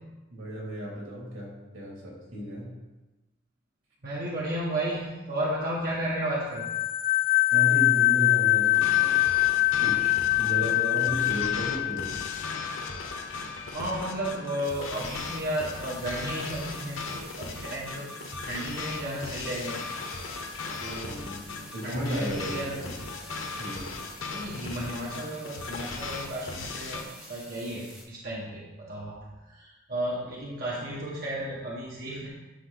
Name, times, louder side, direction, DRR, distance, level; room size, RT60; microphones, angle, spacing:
voice 1, 0.3-2.7 7.5-9.2 9.8-12.1 21.0-21.4 21.7-22.9 23.6-23.8, equal, 80° right, -4 dB, 3.2 m, -34 dB
voice 2, 4.0-6.6 13.7-18.0 18.4-19.8 20.8-21.3 21.8-22.9 24.3-29.2 29.5-32.3, right 1 dB, 45° right, -6 dB, 1.7 m, -33 dB
sound 1, 6.6-13.0, left 19 dB, 45° left, 0.4 m, -24 dB
sound 2, 8.7-27.0, left 3 dB, 80° left, 1.2 m, -37 dB
sound 3, 14.6-28.0, left 1 dB, 10° right, 2.4 m, -49 dB
11.0 x 5.9 x 4.1 m, 1.1 s
head